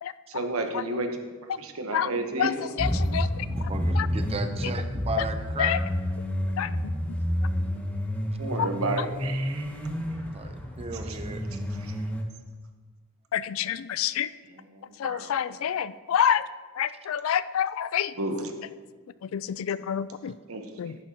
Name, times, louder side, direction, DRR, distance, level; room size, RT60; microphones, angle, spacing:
voice 1, 0.3-1.1 1.6-2.8 7.2-7.9 8.4-9.7 11.1-11.2 11.5-11.9 14.5-15.6 18.1-18.5 20.5-20.6, right 2 dB, 80° right, 5 dB, 1.1 m, -33 dB
voice 2, 2.8-3.5 4.0-4.1 5.6-5.8 6.6-6.7 8.6-8.7 13.3-14.3 15.0-16.4 16.8-18.1 19.3-20.3 20.8-21.0, left 9 dB, 70° left, 16 dB, 0.3 m, -27 dB
sound 1, 2.8-12.2, equal, 5° left, 1.0 m, -29 dB
voice 3, 3.5-5.8 10.3-11.4, right 3 dB, 30° right, 7 dB, 0.6 m, -35 dB
11.0 x 10.0 x 2.9 m, 1.4 s
head